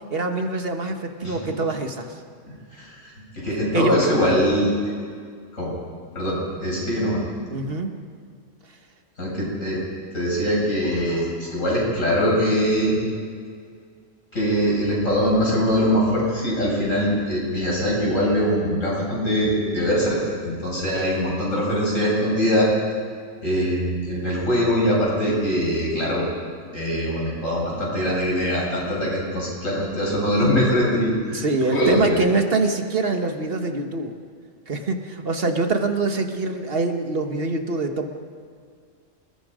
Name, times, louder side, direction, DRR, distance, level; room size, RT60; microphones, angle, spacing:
voice 1, 0.1-2.1 3.7-4.1 7.5-7.9 31.3-34.1 34.7-38.1, right 3 dB, 50° right, 5 dB, 1.8 m, -24 dB
voice 2, 2.8-4.7 5.5-5.7 6.1-7.2 9.2-9.8 10.1-13.0 14.3-22.7 23.4-26.3 26.7-31.4 31.7-32.2, equal, 85° left, -4 dB, 8.1 m, -22 dB
28.5 x 20.5 x 5.2 m, 2.1 s
omnidirectional pair, 1.3 m